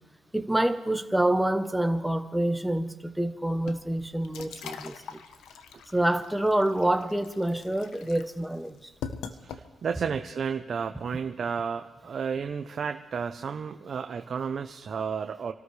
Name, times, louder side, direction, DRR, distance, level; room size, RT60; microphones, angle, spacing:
voice 1, 0.3-5.2 5.9-8.9, right 1 dB, 5° right, 8 dB, 1.0 m, -27 dB
sound 1, 3.6-10.0, left 7 dB, 80° left, 1.0 m, -43 dB
voice 2, 9.4-15.5, right 6 dB, 50° right, 6 dB, 0.8 m, -32 dB
27.5 x 13.0 x 3.3 m, 1.2 s
cardioid pair, 90°, 0 cm